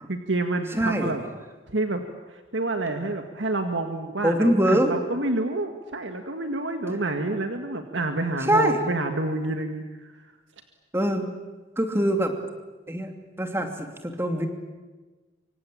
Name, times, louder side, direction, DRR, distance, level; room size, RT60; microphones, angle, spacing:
voice 1, 0.1-1.2 1.7-2.0 2.3-10.2, right 2 dB, 80° right, 6 dB, 1.9 m, -28 dB
voice 2, 0.7-1.1 4.2-4.9 8.5-8.8 10.9-11.3 11.8-12.3 12.9-13.1 13.4-14.5, right 1 dB, 15° right, 5 dB, 2.8 m, -23 dB
25.5 x 24.5 x 8.6 m, 1.3 s
head